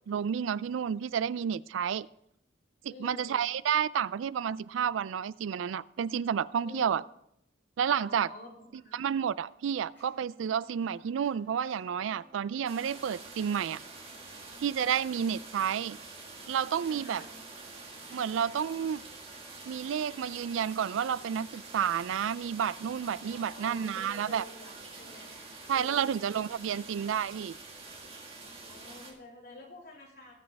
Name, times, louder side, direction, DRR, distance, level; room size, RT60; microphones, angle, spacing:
voice 1, 0.1-2.1 2.8-7.0 7.8-8.3 8.9-13.8 14.6-16.0 16.5-17.2 18.1-19.0 19.7-24.4 25.7-27.5, right 8 dB, 85° right, 19 dB, 0.3 m, -30 dB
voice 2, 2.9-3.5 6.6-7.0 8.0-9.0 16.9-17.3 23.3-26.9 28.4-30.3, left 1 dB, 55° left, -3 dB, 3.3 m, -50 dB
sound 1, 9.9-28.3, equal, 10° left, 4.8 m, -62 dB
sound 2, 12.6-29.1, right 3 dB, 30° right, 1.8 m, -47 dB
18.5 x 7.4 x 3.4 m, 0.77 s
head